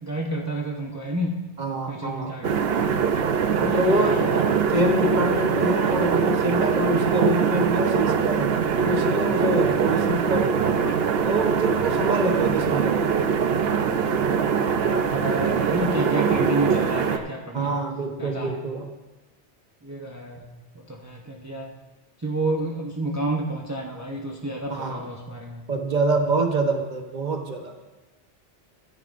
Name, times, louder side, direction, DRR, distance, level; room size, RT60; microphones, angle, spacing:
voice 1, 0.0-1.4 1.9-2.7 3.6-4.4 14.8-17.9 18.2-18.6 19.8-20.5 20.7-21.7 22.2-25.7, right 1 dB, 15° right, -1 dB, 0.8 m, -30 dB
voice 2, 1.6-2.4 3.7-4.3 4.7-8.5 8.8-10.5 11.2-13.1 17.5-18.9 24.7-25.1 25.7-27.7, right 1 dB, 40° right, 3 dB, 1.1 m, -25 dB
sound 1, 2.4-17.2, right 6 dB, 60° right, 0.9 m, -22 dB
13.0 x 13.0 x 2.6 m, 1.2 s
omnidirectional pair, 1.2 m